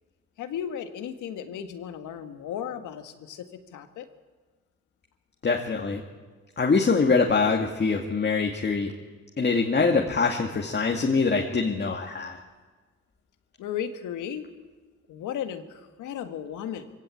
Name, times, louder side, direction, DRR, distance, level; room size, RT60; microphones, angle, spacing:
voice 1, 0.4-4.1 13.6-14.5 15.1-16.9, left 9 dB, 85° left, 7 dB, 1.8 m, -35 dB
voice 2, 5.4-6.0 6.6-8.9 9.4-12.4, left 4 dB, 35° left, 0 dB, 2.1 m, -24 dB
23.5 x 16.5 x 8.5 m, 1.3 s
cardioid pair, 90°, 30 cm